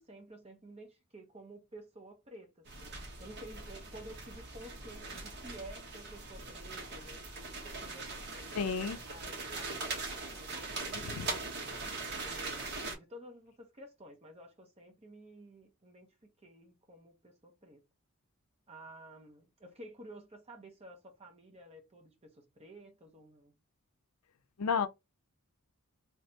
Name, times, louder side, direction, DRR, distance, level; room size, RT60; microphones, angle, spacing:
voice 1, 0.0-2.9 3.2-7.2 7.6-8.8 9.1-11.7 12.2-17.8 18.7-23.5, right 1 dB, 30° right, 1.1 m, -52 dB
sound 1, 2.7-12.9, right 3 dB, 50° right, 1.2 m, -41 dB
voice 2, 8.5-9.0 11.0-11.3 24.6-24.9, left 6 dB, 85° left, 0.4 m, -32 dB
3.3 x 3.2 x 2.8 m
head